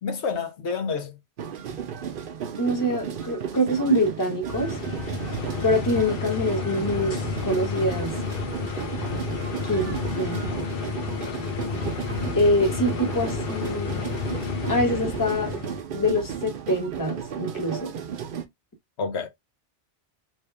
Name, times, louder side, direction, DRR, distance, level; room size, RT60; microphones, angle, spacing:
voice 1, 0.0-1.2 19.0-19.3, left 5 dB, 90° left, 1.1 m, -28 dB
sound 1, 1.4-18.4, right 8 dB, 60° right, 0.8 m, -34 dB
voice 2, 2.6-4.7 5.6-7.2 7.4-8.1 9.6-10.4 12.4-14.0 14.7-15.5 15.9-17.9, left 1 dB, 20° left, 1.2 m, -25 dB
sound 2, 4.5-15.8, left 6 dB, 65° left, 0.8 m, -31 dB
3.2 x 2.7 x 3.2 m
omnidirectional pair, 1.1 m